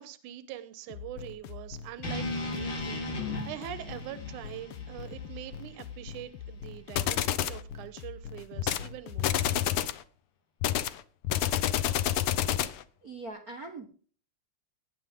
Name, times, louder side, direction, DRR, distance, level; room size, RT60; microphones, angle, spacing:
voice 1, 0.0-9.5, right 12 dB, 75° right, 11 dB, 2.4 m, -44 dB
sound 1, 0.9-9.6, left 6 dB, 75° left, 1.4 m, -43 dB
sound 2, 2.0-6.2, left 2 dB, 40° left, 4.2 m, -37 dB
sound 3, 7.0-7.6 8.6-8.9 9.2-10.0 10.6-12.8, left 11 dB, 90° left, 1.2 m, -28 dB
voice 2, 13.0-13.9, right 3 dB, 50° right, 4 dB, 1.1 m, -41 dB
18.5 x 11.0 x 3.7 m, 0.41 s
omnidirectional pair, 3.6 m